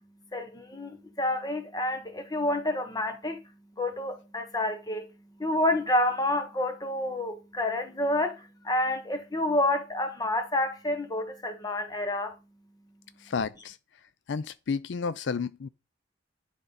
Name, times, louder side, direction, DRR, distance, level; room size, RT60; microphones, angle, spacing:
voice 1, 0.3-3.4 3.8-5.1 5.4-12.3, left 1 dB, 20° left, 1.2 m, -29 dB
voice 2, 13.2-13.8 14.3-15.7, left 5 dB, 70° left, 0.4 m, -31 dB
10.0 x 5.2 x 4.2 m
head